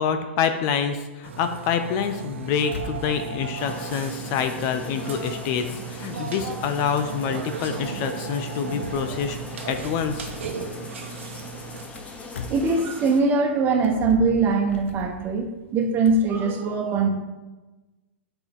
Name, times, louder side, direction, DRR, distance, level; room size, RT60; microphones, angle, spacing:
voice 1, 0.0-9.4 9.7-10.3, left 7 dB, 45° left, 8 dB, 0.6 m, -26 dB
sound 1, 1.2-13.2 13.7-16.3, left 3 dB, 75° left, 0.8 m, -42 dB
Burping eructation, 1.2-11.8, right 5 dB, 75° right, 1.0 m, -35 dB
sound 2, 3.6-13.2, left 3 dB, 20° left, 1.0 m, -41 dB
voice 2, 12.5-17.1, right 4 dB, 30° right, 3 dB, 1.2 m, -22 dB
7.8 x 4.5 x 3.7 m, 1.1 s
hypercardioid pair, 110°, 7 cm